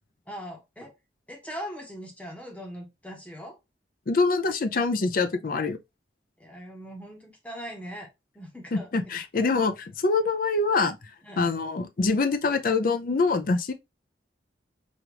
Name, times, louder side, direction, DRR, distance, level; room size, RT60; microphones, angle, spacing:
voice 1, 0.3-0.9 1.3-3.6 6.4-8.1 8.3-9.2 11.2-11.5, equal, 10° left, 0.9 m, -40 dB
voice 2, 4.1-5.8 8.7-11.0 11.4-13.7, left 3 dB, 50° left, 0.5 m, -25 dB
5.1 x 2.5 x 2.9 m
head